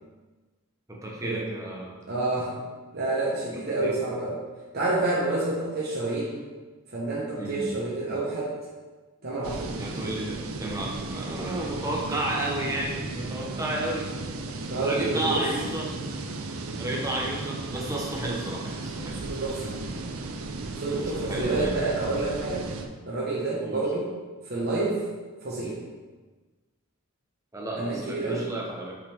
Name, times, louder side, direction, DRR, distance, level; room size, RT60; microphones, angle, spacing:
voice 1, 0.9-1.9 3.8-3.9 7.4-7.7 9.8-14.1 14.8-15.9 16.8-19.2 20.9-21.0 21.3-21.9 23.6-23.8 27.5-28.9, right 1 dB, 15° right, -3 dB, 1.0 m, -32 dB
voice 2, 2.1-2.5 2.9-4.4 4.7-6.4 6.9-8.5 9.2-9.7 14.6-15.4 19.1-19.8 20.8-22.6 23.0-24.1 24.5-25.0 25.4-25.8 27.8-28.4, right 2 dB, 45° right, -6 dB, 1.1 m, -28 dB
sound 1, 9.4-22.9, right 2 dB, 75° right, 0.5 m, -35 dB
5.6 x 5.3 x 3.5 m, 1.3 s
head